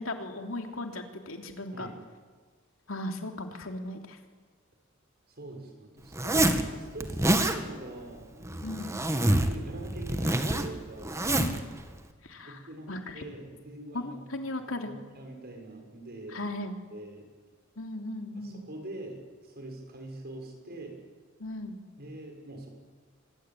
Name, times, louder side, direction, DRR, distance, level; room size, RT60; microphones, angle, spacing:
voice 1, 0.0-1.9 2.9-4.2 8.6-9.0 11.4-11.6 12.2-12.6 12.9-13.3 13.9-14.9 16.3-16.8 17.8-18.6 21.4-21.8, left 1 dB, 80° left, 4 dB, 3.1 m, -37 dB
voice 2, 5.4-8.9 9.2-11.2 12.4-14.3 14.8-16.4 16.9-17.3 18.3-21.0 22.0-22.8, right 2 dB, 50° right, 3 dB, 6.4 m, -44 dB
Zipper (clothing), 6.1-6.6 7.0-7.6 8.4-9.6 9.8-11.6, right 1 dB, 15° right, 1.8 m, -26 dB
25.0 x 22.0 x 9.2 m, 1.5 s
head